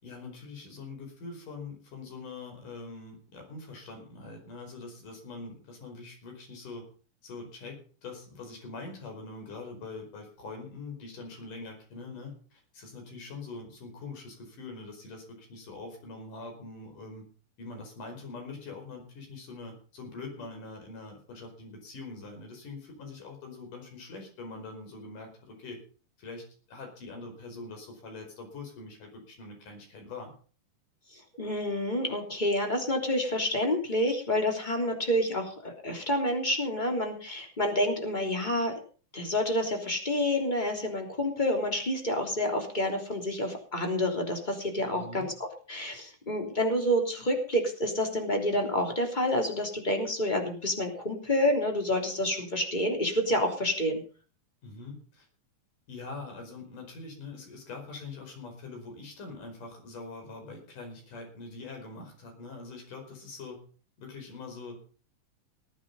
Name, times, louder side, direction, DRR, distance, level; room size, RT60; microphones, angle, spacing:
voice 1, 0.0-6.8 7.2-17.3 17.6-25.8 26.2-30.3 44.9-45.3 54.6-55.3 55.9-63.6 64.0-64.9, left 3 dB, 75° left, 3 dB, 6.5 m, -43 dB
voice 2, 31.4-38.7 39.1-45.3 45.7-54.0, left 1 dB, 15° left, 3 dB, 3.1 m, -28 dB
19.5 x 9.2 x 5.5 m, 0.40 s
omnidirectional pair, 3.7 m